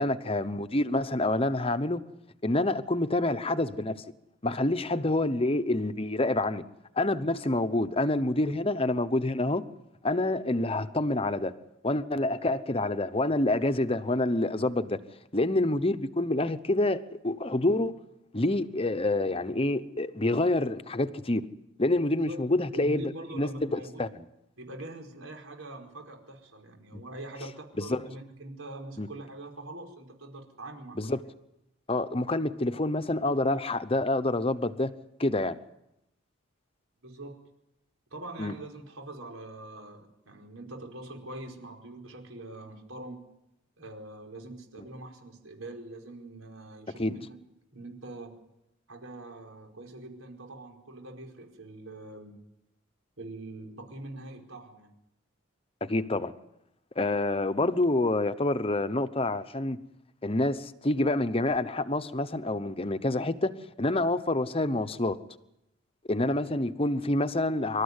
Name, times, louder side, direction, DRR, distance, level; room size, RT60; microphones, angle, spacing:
voice 1, 0.0-2.0 2.4-3.9 4.4-6.6 7.0-9.6 10.0-11.5 11.8-15.0 15.3-17.9 18.3-21.4 21.8-23.0 23.3-24.2 26.9-27.0 27.8-28.0 29.0-29.1 31.0-31.2 31.9-34.9 35.2-35.6 38.4-38.5 47.0-47.2 55.8-56.3 57.0-59.8 60.2-63.5 63.8-65.2 66.1-67.8, left 2 dB, 30° left, 0.9 m, -27 dB
voice 2, 22.7-24.0 24.6-31.2 37.0-37.4 38.1-43.2 43.8-47.4 47.7-48.3 48.9-52.4 53.2-54.9, right 2 dB, 85° right, 4.9 m, -43 dB
26.5 x 13.5 x 9.7 m
head